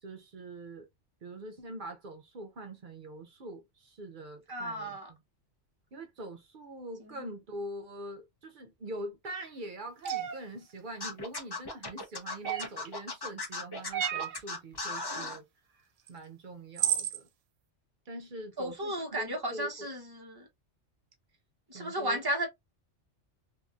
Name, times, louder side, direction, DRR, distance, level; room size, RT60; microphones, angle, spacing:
voice 1, 0.0-0.9 1.2-5.2 5.9-15.5 15.7-17.3 18.1-19.9 21.7-22.2, right 1 dB, 55° right, 0.6 m, -44 dB
voice 2, 4.5-5.1 7.1-7.3 18.6-20.4 21.7-22.5, right 1 dB, 20° right, 0.9 m, -34 dB
sound 1, 10.0-10.4 12.4-12.9 13.9-14.4 16.1-16.2 16.8-17.2, right 10 dB, 85° right, 0.9 m, -31 dB
Scratching (performance technique), 11.0-15.4, left 3 dB, 25° left, 0.6 m, -37 dB
2.8 x 2.5 x 2.4 m
omnidirectional pair, 1.3 m